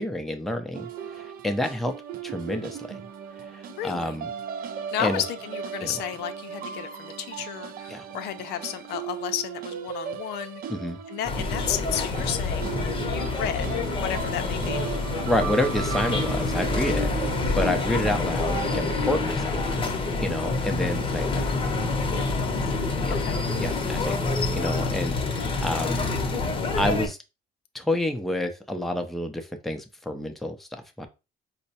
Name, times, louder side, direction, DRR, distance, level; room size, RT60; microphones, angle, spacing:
voice 1, 0.0-1.9 2.2-3.0 3.5-4.3 5.0-5.2 5.8-6.0 7.9-8.1 10.7-11.0 13.2-13.3 15.2-19.6 20.2-21.4 23.0-23.2 23.6-26.1 26.8-27.2 27.7-30.7 31.0-31.1, left 1 dB, ahead, 0.5 m, -29 dB
sound 1, 0.7-19.5, right 7 dB, 60° right, 0.4 m, -37 dB
voice 2, 3.8-4.1 4.9-10.6 11.1-13.8 14.0-15.2 18.9-19.2 21.3-21.5 22.1-22.8 23.2-23.4 24.7-24.8, left 10 dB, 80° left, 0.5 m, -33 dB
sound 2, 11.2-27.1, left 3 dB, 30° left, 0.7 m, -27 dB
4.3 x 2.1 x 2.7 m
cardioid pair, 110°, 17 cm